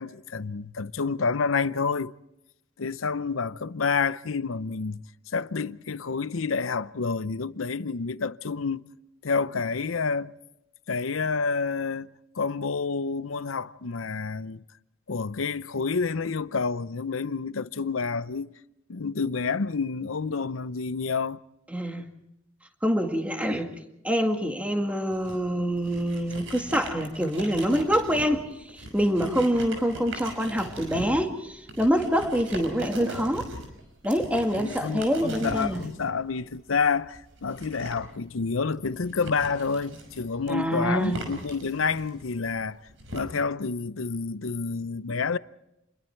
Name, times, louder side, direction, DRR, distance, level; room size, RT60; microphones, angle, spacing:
voice 1, 0.0-2.1 2.8-5.0 5.3-8.8 9.2-10.3 10.9-14.6 15.1-18.5 18.9-21.4 34.6-42.8 43.1-45.4, left 5 dB, 90° left, 0.7 m, -29 dB
voice 2, 21.7-22.0 22.8-23.7 24.0-28.4 28.7-33.5 34.0-35.8 40.5-41.2, equal, 5° right, 2.0 m, -25 dB
sound 1, 25.1-43.2, right 1 dB, 70° right, 5.8 m, -40 dB
28.5 x 22.0 x 4.6 m
head